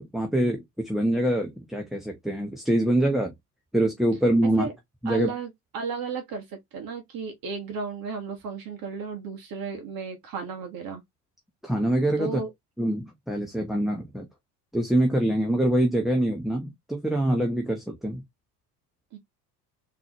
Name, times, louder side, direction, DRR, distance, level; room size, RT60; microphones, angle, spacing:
voice 1, 0.0-3.3 3.7-4.7 5.0-5.3 11.6-12.4 12.8-14.3 14.7-18.2, right 1 dB, ahead, 0.8 m, -25 dB
voice 2, 5.0-11.0 12.2-12.5 19.1-19.2, right 5 dB, 45° right, 1.4 m, -34 dB
3.9 x 3.1 x 2.9 m
figure-of-eight pair, 65°, 50 cm